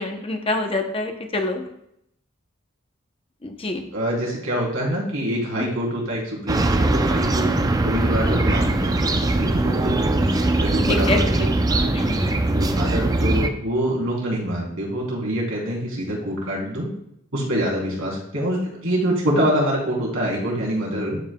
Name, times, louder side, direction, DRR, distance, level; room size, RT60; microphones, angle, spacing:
voice 1, 0.0-1.7 3.4-3.8 10.9-11.2 11.9-12.4, left 2 dB, 30° left, 5 dB, 0.7 m, -26 dB
voice 2, 3.9-11.9 12.5-16.9 17.3-21.2, equal, 85° right, -3 dB, 3.0 m, -25 dB
sound 1, 6.5-13.5, right 2 dB, 20° right, 0.4 m, -21 dB
11.5 x 5.4 x 2.2 m, 0.76 s
head